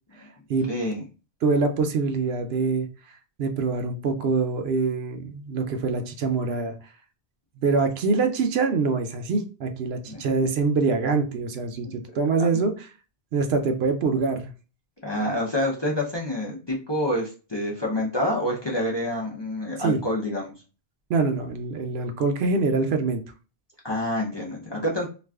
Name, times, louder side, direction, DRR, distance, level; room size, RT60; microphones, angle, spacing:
voice 1, 0.7-1.0 10.1-10.2 15.0-20.5 23.8-25.1, left 1 dB, 30° left, 0.5 m, -27 dB
voice 2, 1.4-2.9 3.4-6.8 7.6-12.7 13.3-14.5 19.8-20.0 21.1-23.2, right 4 dB, 75° right, 0.8 m, -24 dB
2.4 x 2.4 x 3.4 m
omnidirectional pair, 1.1 m